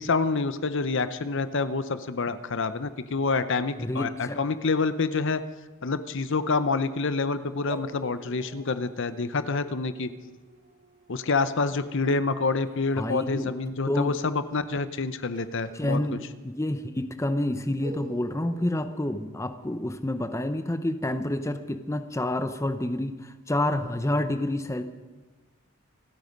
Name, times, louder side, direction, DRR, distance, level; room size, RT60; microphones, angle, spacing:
voice 1, 0.0-5.4 5.8-10.1 11.1-16.0, left 4 dB, 60° left, 12 dB, 0.8 m, -27 dB
voice 2, 3.8-4.4 13.0-13.5 13.9-14.1 15.7-24.8, left 1 dB, 15° left, 9 dB, 0.7 m, -28 dB
sound 1, 7.7-13.1 15.3-16.8 17.1-17.2 17.8-20.0, right 2 dB, 40° right, 1.1 m, -47 dB
27.0 x 9.5 x 5.3 m, 1.3 s
head